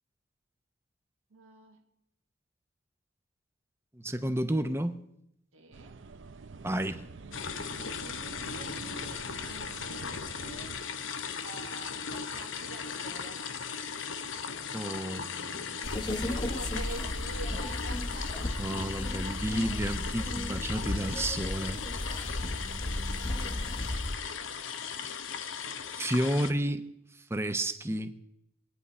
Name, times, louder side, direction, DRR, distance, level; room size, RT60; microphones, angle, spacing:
voice 1, 1.3-1.9 4.1-4.3 5.5-6.0 7.7-11.0 11.4-13.5 16.2-18.7 20.2-20.3, right 2 dB, 90° right, 1.4 m, -47 dB
voice 2, 3.9-5.0 6.6-7.0 14.7-15.8 18.6-21.8 22.6-23.8 25.9-26.9 27.3-28.1, right 1 dB, 10° right, 0.7 m, -32 dB
sound 1, 5.7-10.8, right 4 dB, 65° right, 0.6 m, -46 dB
sound 2, 7.3-26.5, left 6 dB, 70° left, 0.8 m, -38 dB
sound 3, 15.8-24.2, left 1 dB, 20° left, 0.8 m, -35 dB
24.0 x 9.7 x 4.2 m
head